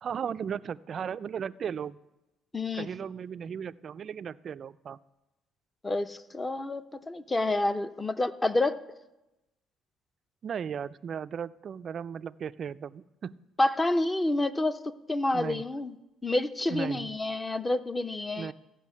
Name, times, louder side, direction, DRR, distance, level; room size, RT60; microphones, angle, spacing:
voice 1, 0.0-2.0 2.7-5.0 10.4-13.4 15.3-15.6 16.7-17.2 18.4-18.5, right 7 dB, 45° right, 15 dB, 0.3 m, -36 dB
voice 2, 2.5-2.9 5.8-8.8 13.6-14.8 15.1-15.9 16.2-18.5, left 2 dB, 15° left, 12 dB, 0.6 m, -28 dB
14.5 x 5.6 x 8.3 m, 0.99 s
cardioid pair, 115°, 0 cm